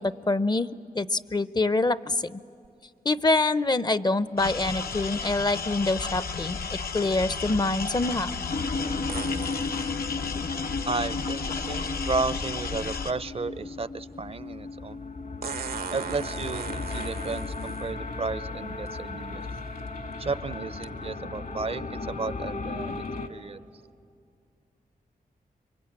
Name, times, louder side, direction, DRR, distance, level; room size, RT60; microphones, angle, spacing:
voice 1, 0.0-2.4 3.0-8.3, left 2 dB, 30° left, 16 dB, 0.6 m, -26 dB
sound 1, 2.6-2.7 9.1-10.0 12.0-12.1 15.4-17.9 18.9-19.0 19.6-19.9 20.8-20.9, right 6 dB, 85° right, 1.0 m, -38 dB
sound 2, 4.4-13.1, left 5 dB, 80° left, 0.9 m, -33 dB
sound 3, 8.5-23.3, left 3 dB, 65° left, 1.8 m, -35 dB
voice 2, 10.9-15.0 15.9-19.5 20.2-22.9 23.3-23.6, right 4 dB, 40° right, 17 dB, 0.6 m, -33 dB
26.5 x 23.0 x 8.8 m, 2.4 s
cardioid pair, 65°, 15 cm